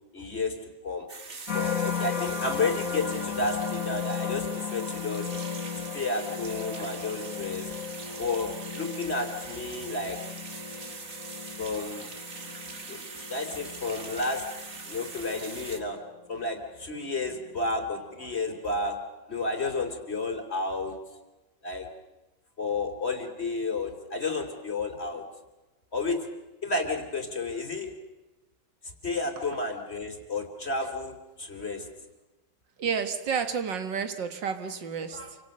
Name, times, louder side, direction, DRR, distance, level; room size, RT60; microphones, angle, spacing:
voice 1, 0.1-0.6 0.8-1.1 1.5-5.3 5.9-7.7 8.2-10.2 11.6-12.1 12.9-13.0 13.3-14.4 14.9-16.0 16.3-19.0 19.3-21.2 21.6-21.9 22.6-25.2 25.9-26.2 26.6-27.9 29.0-31.1 31.4-31.9 35.1-35.3, left 3 dB, 35° left, 5 dB, 3.5 m, -31 dB
sound 1, 1.1-15.8, right 4 dB, 40° right, 2.2 m, -42 dB
sound 2, 1.5-16.7 17.2-17.6, left 7 dB, 50° left, 2.0 m, -36 dB
voice 2, 32.8-35.4, right 6 dB, 90° right, 9 dB, 2.4 m, -31 dB
28.0 x 25.5 x 6.7 m, 1.1 s
omnidirectional pair, 1.9 m